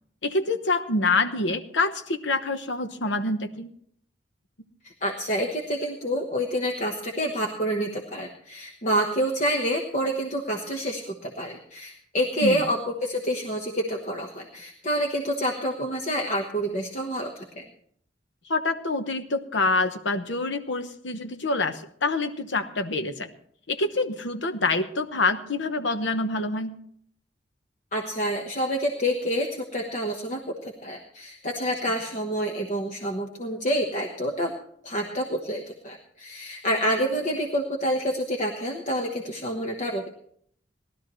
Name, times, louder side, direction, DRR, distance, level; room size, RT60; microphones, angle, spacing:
voice 1, 0.2-3.7 12.4-12.6 18.5-23.3 23.7-26.7, left 3 dB, 80° left, 8 dB, 1.1 m, -26 dB
voice 2, 5.0-17.6 27.9-34.5 34.8-40.1, equal, 40° left, 2 dB, 1.2 m, -28 dB
19.0 x 12.0 x 3.1 m, 0.63 s
head